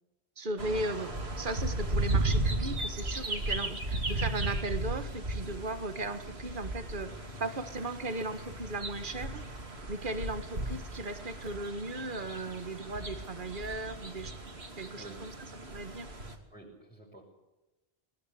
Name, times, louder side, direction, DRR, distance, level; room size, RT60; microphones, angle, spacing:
voice 1, 0.4-7.1 7.4-9.4 9.9-14.3 14.8-16.1, right 2 dB, 55° right, 9 dB, 1.8 m, -37 dB
sound 1, 0.6-16.4, right 2 dB, 80° right, 3.0 m, -35 dB
voice 2, 16.5-17.2, right 1 dB, 10° left, -5 dB, 6.3 m, -50 dB
21.0 x 19.0 x 8.4 m, 1.0 s
omnidirectional pair, 1.1 m